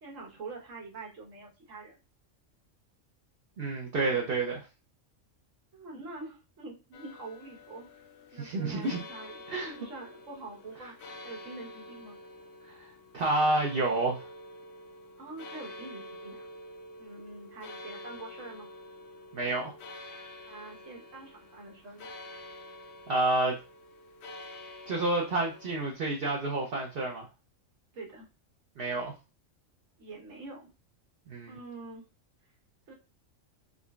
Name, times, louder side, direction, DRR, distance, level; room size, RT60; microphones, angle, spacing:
voice 1, 0.0-2.0 4.1-4.3 5.7-8.0 8.3-12.2 15.2-16.5 17.0-18.7 20.5-22.1 27.9-28.3 30.0-30.7 31.5-32.0 32.9-33.0, right 3 dB, 70° right, -1 dB, 1.5 m, -45 dB
voice 2, 3.6-4.6 8.4-9.0 9.5-9.7 13.1-14.2 19.3-19.7 23.1-23.6 24.9-27.2 28.8-29.1 31.3-31.6, right 2 dB, 55° right, -1 dB, 0.8 m, -29 dB
sound 1, 6.9-25.9, left 1 dB, 60° left, 0.8 m, -47 dB
3.7 x 3.1 x 2.3 m, 0.30 s
omnidirectional pair, 1.4 m